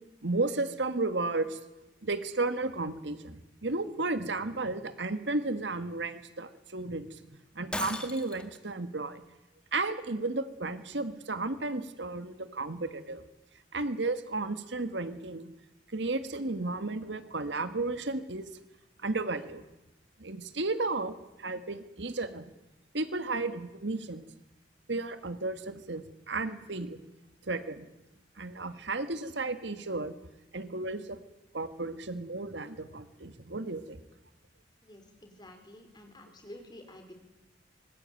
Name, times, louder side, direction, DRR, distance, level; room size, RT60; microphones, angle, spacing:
voice 1, 0.2-1.6 2.0-9.2 9.7-13.2 13.7-15.5 15.9-18.5 19.0-19.6 20.2-22.5 22.9-24.2 24.9-27.0 27.5-27.9 28.4-30.1 30.5-31.2 31.5-34.0, right 3 dB, 70° right, 11 dB, 1.7 m, -33 dB
Shatter, 7.7-8.6, left 1 dB, 5° left, 1.9 m, -36 dB
voice 2, 34.8-37.1, left 1 dB, 20° left, 5 dB, 4.2 m, -50 dB
25.5 x 20.5 x 9.1 m, 0.98 s
head